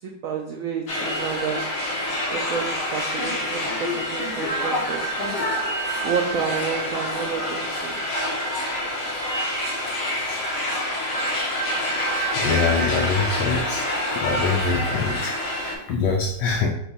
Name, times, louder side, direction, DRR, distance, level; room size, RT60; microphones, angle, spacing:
voice 1, 0.0-1.6 2.3-5.0 6.0-8.0, right 6 dB, 90° right, 2 dB, 0.7 m, -30 dB
sound 1, 0.9-15.7, equal, 55° left, 1.3 m, -26 dB
voice 2, 12.3-16.7, left 4 dB, 70° left, 0 dB, 1.1 m, -24 dB
5.2 x 2.4 x 3.9 m, 0.76 s
omnidirectional pair, 2.0 m